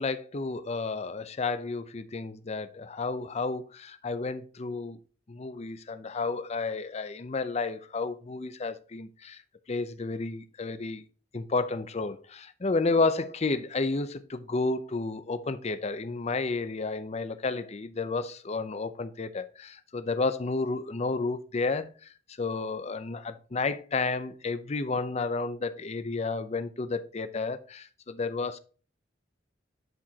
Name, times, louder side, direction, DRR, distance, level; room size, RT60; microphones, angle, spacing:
voice 1, 0.0-5.0 5.3-9.4 9.7-11.0 11.3-21.9 22.4-28.6, left 3 dB, 35° left, 0.6 m, -31 dB
11.0 x 4.9 x 2.8 m
head